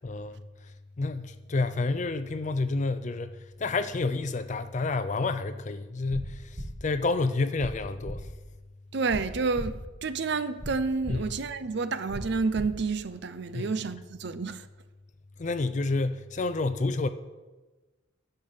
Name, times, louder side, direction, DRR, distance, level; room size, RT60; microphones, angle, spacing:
voice 1, 0.0-0.4 1.0-8.3 11.1-11.2 13.5-13.8 15.4-17.1, left 3 dB, 35° left, 0.4 m, -29 dB
sound 1, 6.1-6.2 6.5-6.7 7.6-7.7 8.0-8.2 9.1-9.2 9.5-9.7 10.6-10.7 11.0-11.2 12.1-12.2 12.5-12.7, equal, 25° right, 1.4 m, -36 dB
voice 2, 8.9-9.8 10.0-14.7, right 4 dB, 55° right, 0.5 m, -29 dB
10.5 x 6.8 x 7.4 m
head